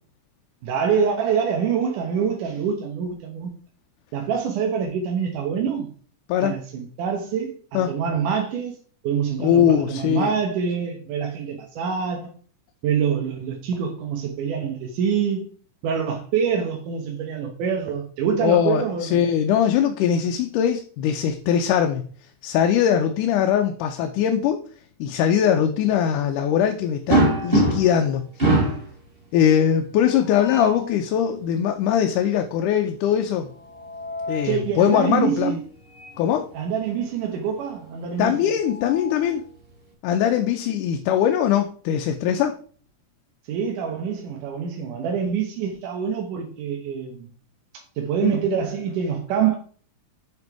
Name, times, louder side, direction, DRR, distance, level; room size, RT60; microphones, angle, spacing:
voice 1, 0.6-3.5 4.1-5.9 6.4-8.8 9.0-12.3 12.8-15.5 15.8-19.2 34.4-35.6 36.5-38.5 43.5-47.3 48.0-49.6, right 7 dB, 90° right, 2.7 m, -25 dB
voice 2, 9.4-10.3 18.4-22.0 22.4-24.6 25.0-28.6 29.3-33.5 34.3-35.6 36.2-36.5 38.2-39.4 40.0-42.6 48.2-48.4, left 9 dB, 90° left, 2.3 m, -21 dB
sound 1, 27.1-28.0 28.4-28.9 30.1-30.9 33.5-34.6 36.0-36.2 36.5-36.6 38.2-39.4, right 2 dB, 20° right, 2.6 m, -24 dB
7.8 x 5.3 x 4.7 m
omnidirectional pair, 3.5 m